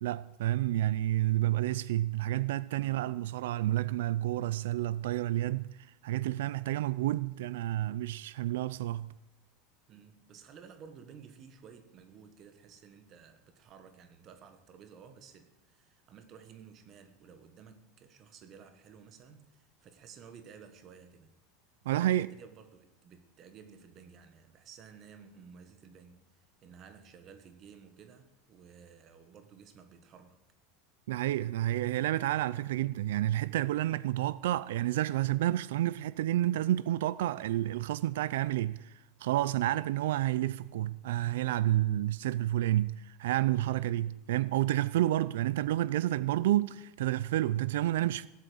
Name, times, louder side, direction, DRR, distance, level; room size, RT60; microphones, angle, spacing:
voice 1, 0.0-5.7 6.0-9.1 21.9-22.3 31.1-48.3, right 14 dB, 85° right, 0.4 m, -30 dB
voice 2, 9.9-21.3 21.9-30.4 39.6-39.8 43.7-44.0, right 6 dB, 30° right, 1.4 m, -54 dB
17.0 x 8.3 x 7.8 m
supercardioid pair, 175°, 0 cm